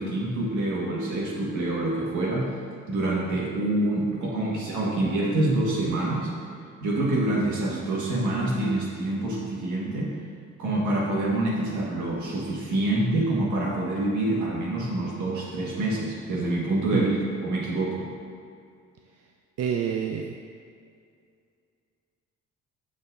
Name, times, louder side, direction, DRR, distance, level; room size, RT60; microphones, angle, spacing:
voice 1, 0.0-2.5 2.9-6.3 6.8-10.2 10.6-17.1 17.4-18.1, right 2 dB, 75° right, -3 dB, 1.6 m, -26 dB
voice 2, 19.6-20.4, right 8 dB, 55° right, 2 dB, 0.5 m, -27 dB
7.0 x 6.4 x 2.6 m, 2.3 s
cardioid pair, 90°, 30 cm